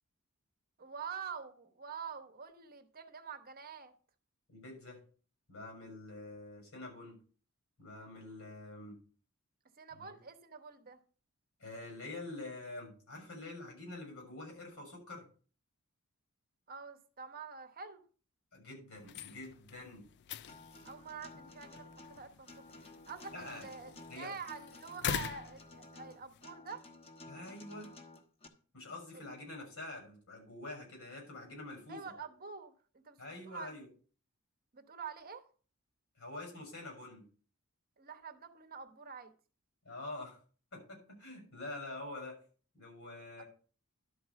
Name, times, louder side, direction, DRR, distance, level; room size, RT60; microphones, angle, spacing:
voice 1, 0.8-3.9 9.8-11.0 16.7-18.0 20.8-22.6 23.1-26.8 29.1-29.2 31.9-33.7 34.7-35.4 38.0-39.3, right 6 dB, 45° right, 1.0 m, -46 dB
voice 2, 4.5-5.0 5.5-7.2 7.8-9.0 9.9-10.2 11.6-15.2 18.5-20.0 23.3-23.7 24.1-24.3 27.3-27.9 28.7-32.0 33.2-33.9 36.2-37.2 39.8-40.4 40.7-42.3 42.7-43.4, left 2 dB, 75° left, 6.4 m, -46 dB
sound 1, 19.0-26.5, left 9 dB, 55° left, 0.4 m, -44 dB
Acoustic guitar, 20.5-28.5, left 2 dB, 30° left, 1.2 m, -53 dB
12.0 x 4.6 x 6.9 m
head